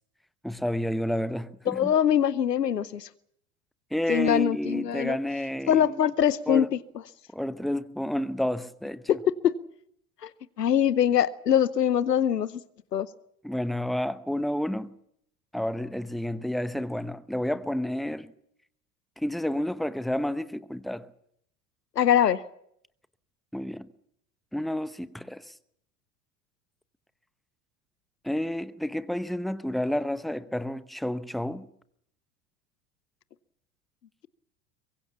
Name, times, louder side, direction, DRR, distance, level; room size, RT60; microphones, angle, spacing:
voice 1, 0.4-2.0 3.9-6.1 6.5-6.7 7.3-9.1 13.4-14.9 15.5-18.3 19.2-21.1 23.5-23.9 24.5-25.5 28.2-31.7, left 1 dB, ahead, 0.9 m, -30 dB
voice 2, 1.7-3.1 4.1-5.2 5.7-6.7 9.1-9.2 9.4-9.5 10.2-10.3 10.6-12.6 12.9-13.1 22.0-22.4, left 9 dB, 85° left, 0.9 m, -23 dB
23.5 x 21.5 x 7.2 m
figure-of-eight pair, 80°, 47 cm